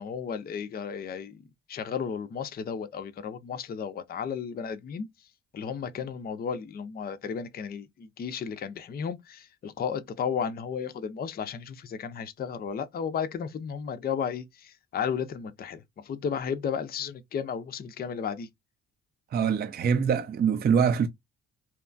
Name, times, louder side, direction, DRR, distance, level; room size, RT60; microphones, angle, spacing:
voice 1, 0.0-5.1 5.5-18.5, left 7 dB, 30° left, 0.4 m, -34 dB
voice 2, 19.3-21.1, right 7 dB, 35° right, 0.4 m, -24 dB
2.8 x 2.3 x 2.4 m
cardioid pair, 90°, 30 cm